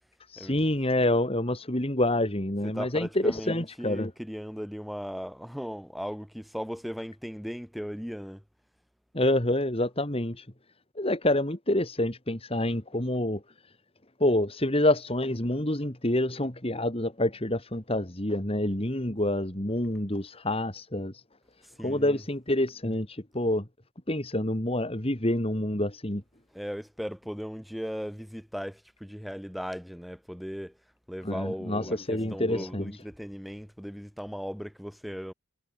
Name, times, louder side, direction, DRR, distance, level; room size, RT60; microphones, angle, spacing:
voice 1, 0.3-4.1 9.1-10.4 11.0-13.4 14.2-21.1 21.8-23.6 24.1-26.2 31.2-32.9, left 1 dB, 30° left, 3.0 m, -27 dB
voice 2, 2.6-8.4 21.6-22.2 26.5-30.8 31.1-35.3, equal, ahead, 5.9 m, -37 dB
head